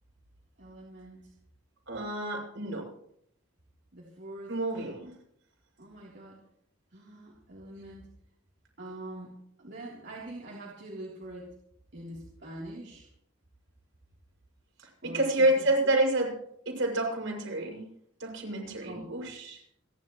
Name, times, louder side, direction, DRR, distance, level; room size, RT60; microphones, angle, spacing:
voice 1, 0.6-1.3 3.9-4.9 5.8-6.4 6.9-8.1 8.8-11.5 11.9-13.1 15.0-15.7 18.8-19.1, right 1 dB, 60° right, -5 dB, 3.5 m, -44 dB
voice 2, 1.9-2.9 4.5-5.1 15.0-16.3 16.7-17.8 18.2-19.6, right 1 dB, 75° right, -1 dB, 6.3 m, -28 dB
29.5 x 11.5 x 3.2 m, 0.70 s
head